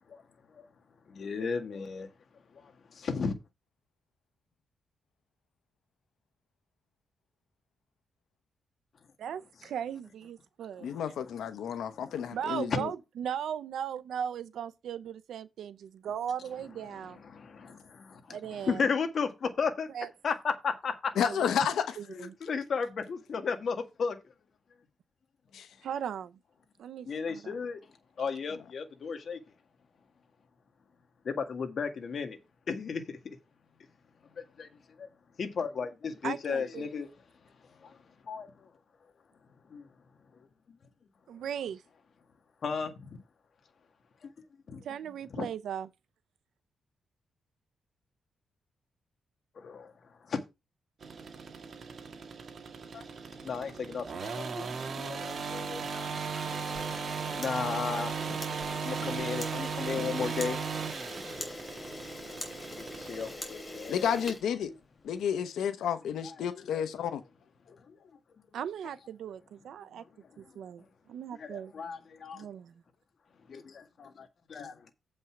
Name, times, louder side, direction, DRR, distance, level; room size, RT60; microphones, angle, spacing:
voice 1, 1.1-2.1 2.5-3.3 10.8-11.0 11.9-12.4 16.9-19.9 20.2-21.1 21.4-21.5 22.1-24.2 27.1-27.8 28.2-29.4 31.2-32.4 32.7-33.4 34.4-34.7 35.0-35.1 35.4-37.1 37.6-38.0 38.2-38.7 39.7-39.9 40.7-40.8 42.6-43.2 44.2-44.3 44.7-44.9 45.3-45.5 49.6-49.9 50.2-50.4 52.9-53.1 53.4-56.5 57.4-58.4 58.8-60.6 62.9-64.1 66.4-67.1 67.7-68.0 71.3-72.5 73.5-74.9, left 5 dB, 55° left, 1.8 m, -35 dB
voice 2, 9.2-10.9 12.3-17.2 18.3-18.8 19.9-20.1 21.2-21.5 22.0-22.3 25.8-26.4 26.8-27.5 36.2-36.9 41.3-41.8 44.8-45.9 68.5-70.0 70.4-71.7 72.3-72.7, right 8 dB, 80° right, 0.7 m, -38 dB
voice 3, 10.8-12.9 21.2-21.9 25.5-25.7 63.9-64.7 65.0-67.2, left 8 dB, 90° left, 1.0 m, -31 dB
sound 1, 51.0-63.3, right 5 dB, 50° right, 1.8 m, -37 dB
Camera, 56.4-65.1, left 1 dB, 20° left, 3.2 m, -43 dB
7.9 x 5.5 x 5.9 m
cardioid pair, 120°, 0 cm